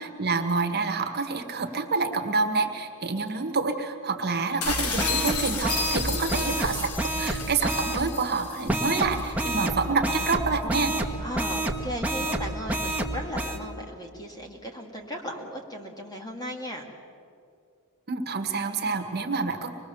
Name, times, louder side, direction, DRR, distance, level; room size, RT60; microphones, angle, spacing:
voice 1, 0.0-10.9 18.1-19.7, right 4 dB, 45° right, 5 dB, 1.6 m, -27 dB
sound 1, 4.6-9.3, left 5 dB, 80° left, 1.9 m, -32 dB
sound 2, 4.6-8.0 8.7-13.6, right 1 dB, 5° right, 1.6 m, -29 dB
voice 2, 11.2-16.9, equal, 20° left, 1 dB, 2.5 m, -36 dB
25.0 x 21.0 x 7.1 m, 2.4 s
head